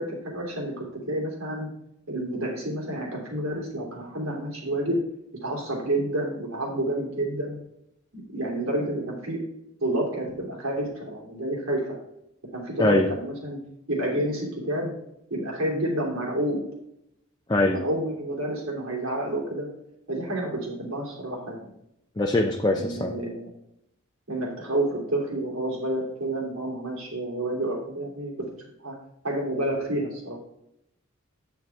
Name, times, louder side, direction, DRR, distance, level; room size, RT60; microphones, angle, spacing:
voice 1, 0.0-1.7 2.1-5.0 5.4-7.6 8.1-9.4 9.8-12.0 12.5-13.6 13.9-14.9 15.3-16.6 17.7-19.7 20.1-21.7 22.7-23.5 24.3-28.3 28.8-28.9 29.2-30.4, right 1 dB, 75° right, -2 dB, 3.1 m, -29 dB
voice 2, 12.8-13.1 17.5-17.8 22.2-23.1, left 2 dB, 20° left, 3 dB, 0.5 m, -22 dB
9.1 x 7.3 x 3.5 m, 0.79 s
head